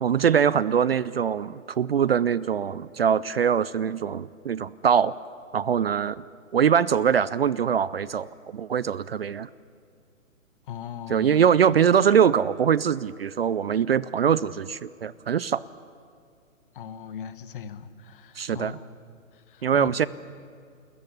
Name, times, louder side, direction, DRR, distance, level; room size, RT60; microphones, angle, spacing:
voice 1, 0.0-5.1 5.5-6.2 6.5-9.5 11.1-15.6 18.4-18.8 19.6-20.1, right 8 dB, 45° right, 20 dB, 0.5 m, -23 dB
voice 2, 10.7-11.4 16.7-18.8 19.3-20.1, left 8 dB, 40° left, 13 dB, 1.3 m, -38 dB
28.5 x 14.0 x 9.9 m, 2.3 s
figure-of-eight pair, 135°, 41 cm